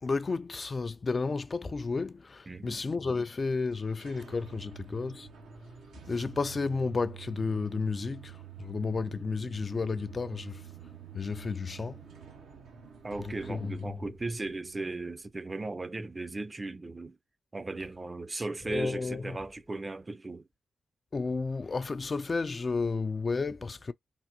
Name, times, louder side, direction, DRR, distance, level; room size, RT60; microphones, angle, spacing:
voice 1, 0.0-5.3 6.1-10.7 11.1-12.0 13.2-14.0 18.7-19.4 21.1-23.9, left 4 dB, 45° left, 0.3 m, -32 dB
voice 2, 2.5-2.8 13.0-17.2 17.5-20.5, right 2 dB, 30° right, 0.5 m, -37 dB
sound 1, 3.7-15.4, right 10 dB, 85° right, 0.7 m, -49 dB
3.3 x 2.0 x 2.8 m
supercardioid pair, 45°, 0 cm